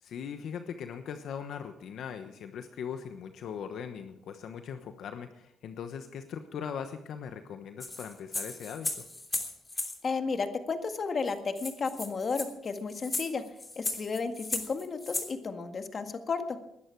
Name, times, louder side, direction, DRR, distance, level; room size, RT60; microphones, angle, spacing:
voice 1, 0.0-9.1, left 7 dB, 70° left, 7 dB, 1.1 m, -40 dB
sound 1, 7.8-10.0 10.9-11.0 11.3-11.4 11.6-15.3, left 2 dB, 20° left, 3.1 m, -36 dB
voice 2, 10.0-13.4 13.8-16.6, left 4 dB, 40° left, 7 dB, 1.8 m, -33 dB
20.5 x 11.5 x 4.7 m, 0.78 s
cardioid pair, 90°, 0 cm